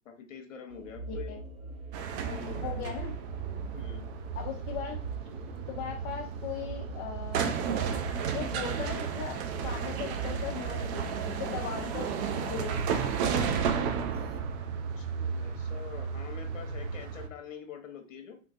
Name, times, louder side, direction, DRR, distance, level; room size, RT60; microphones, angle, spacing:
voice 1, 0.0-1.4 2.3-2.8 3.7-4.1 15.0-18.4, left 7 dB, 80° left, 5 dB, 0.8 m, -45 dB
sound 1, 0.7-14.4, right 5 dB, 15° right, 0.4 m, -42 dB
voice 2, 1.1-1.4 2.2-3.1 4.4-5.0 5.7-7.6 8.3-12.1 12.4-12.8 13.2-13.6, left 8 dB, 35° left, 0 dB, 0.5 m, -39 dB
sound 2, 1.9-17.3, right 6 dB, 60° right, 0.6 m, -33 dB
3.2 x 3.0 x 2.5 m, 0.37 s
hypercardioid pair, 110°, 38 cm